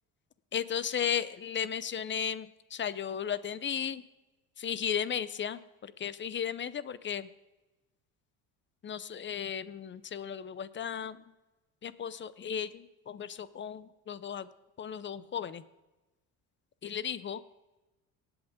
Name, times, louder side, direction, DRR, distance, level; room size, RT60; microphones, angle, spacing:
voice 1, 0.5-4.0 4.6-7.3 8.8-11.2 11.8-14.5 14.8-15.6 16.8-17.4, left 8 dB, 30° left, 16 dB, 0.6 m, -35 dB
19.0 x 8.0 x 3.7 m, 1.1 s
supercardioid pair, 90°, 36 cm